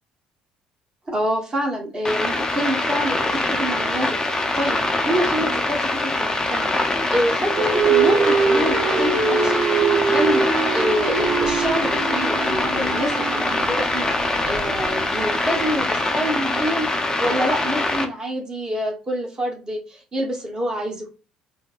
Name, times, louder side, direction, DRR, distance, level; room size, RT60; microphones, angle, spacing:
voice 1, 1.1-6.7 7.1-9.6 9.9-16.9 17.2-21.1, equal, 25° right, 1 dB, 1.4 m, -27 dB
sound 1, 2.0-18.0, left 2 dB, 20° left, 0.7 m, -23 dB
sound 2, 7.5-15.8, right 5 dB, 50° right, 0.8 m, -23 dB
4.3 x 2.1 x 2.5 m, 0.32 s
figure-of-eight pair, 55°, 3 cm